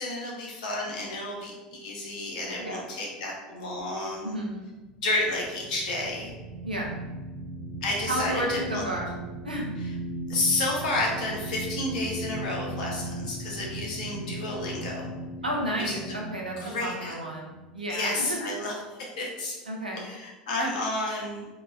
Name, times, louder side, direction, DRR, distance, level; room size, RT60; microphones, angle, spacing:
voice 1, 0.0-4.4 5.0-6.3 7.8-8.9 9.8-9.9 10.3-15.1 15.8-16.0 16.6-17.1 17.9-19.6 19.9-21.5, left 2 dB, 60° left, -2 dB, 0.7 m, -31 dB
voice 2, 4.2-4.7 6.6-6.9 8.1-9.1 9.4-9.6 15.4-18.4 19.7-20.0, right 1 dB, 85° right, -2 dB, 0.5 m, -32 dB
sound 1, 4.6-18.3, right 1 dB, 35° right, 0.7 m, -38 dB
2.9 x 2.1 x 2.3 m, 1.2 s
figure-of-eight pair, 75°, 5 cm